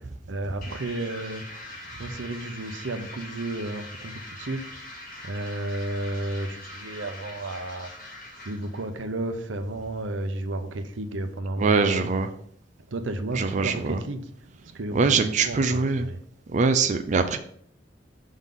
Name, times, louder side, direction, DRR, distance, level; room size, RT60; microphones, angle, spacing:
voice 1, 0.3-4.8 5.2-7.9 8.4-12.1 12.9-16.2, right 2 dB, 90° right, 8 dB, 0.8 m, -33 dB
sound 1, 0.6-8.9, left 1 dB, 45° left, 1.5 m, -42 dB
voice 2, 11.6-12.3 13.3-14.0 14.9-16.1 16.5-17.4, right 4 dB, 40° right, 7 dB, 0.4 m, -23 dB
6.2 x 3.8 x 5.4 m, 0.65 s
head